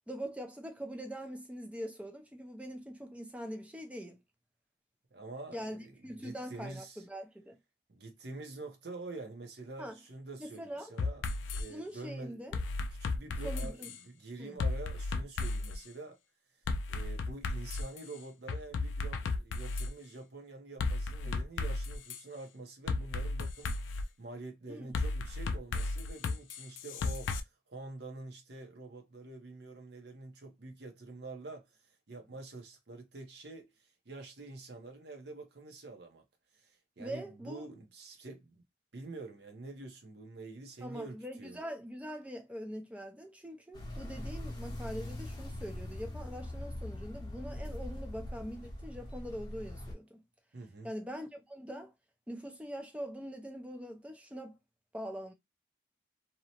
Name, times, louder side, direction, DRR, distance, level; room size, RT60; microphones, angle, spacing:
voice 1, 0.1-4.2 5.5-7.6 9.8-10.0 10.4-11.0 11.7-12.6 13.4-13.9 14.4-14.6 21.3-21.4 24.7-24.9 37.0-37.7 40.8-50.2 50.8-51.9 52.3-54.6 54.9-55.3, equal, 5° right, 0.4 m, -43 dB
voice 2, 5.1-7.0 7.9-11.3 11.5-12.4 13.0-16.2 16.9-31.7 32.1-36.2 36.5-38.6 38.9-41.6 50.5-50.9, right 3 dB, 60° right, 0.7 m, -47 dB
sound 1, 11.0-11.6 12.5-14.0 14.6-15.8 16.7-18.0 18.5-19.9 20.8-22.2 22.9-24.0 24.9-27.4, left 3 dB, 85° left, 0.4 m, -34 dB
sound 2, 43.7-49.9, left 1 dB, 20° left, 0.8 m, -42 dB
2.8 x 2.1 x 2.8 m
head